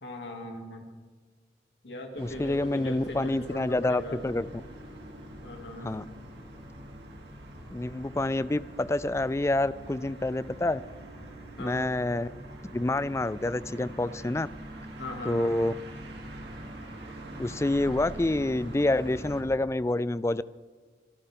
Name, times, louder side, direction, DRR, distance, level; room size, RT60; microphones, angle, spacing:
voice 1, 0.0-0.9 1.8-4.3 5.4-5.9 11.6-11.8 15.0-15.6, left 1 dB, 80° left, 2 dB, 2.7 m, -39 dB
voice 2, 2.2-4.5 5.8-6.0 7.7-10.8 11.6-12.3 12.7-14.5 15.3-15.7 17.4-20.4, left 2 dB, 15° left, 17 dB, 0.3 m, -27 dB
sound 1, 2.2-19.4, right 1 dB, 70° right, 2.8 m, -44 dB
25.0 x 13.0 x 3.8 m, 1.5 s
head